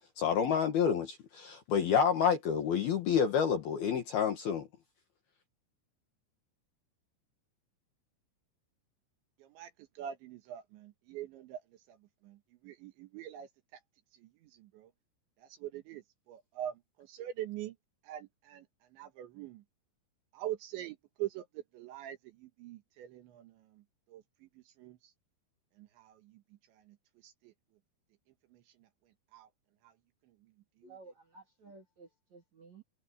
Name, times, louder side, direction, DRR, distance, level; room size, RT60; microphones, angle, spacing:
voice 1, 0.2-4.7, left 7 dB, 60° left, 3.3 m, -28 dB
voice 2, 10.0-11.6 12.3-12.4 12.6-13.5 15.6-16.0 16.3-16.7 17.1-17.7 18.1-18.6 19.0-19.6 20.4-21.4 21.8-22.2 22.6-23.2 24.1-24.2 24.8-25.0 29.3-29.5, right 12 dB, 70° right, 3.6 m, -41 dB
voice 3, 30.8-32.8, right 3 dB, 45° right, 2.9 m, -54 dB
omnidirectional pair, 5.7 m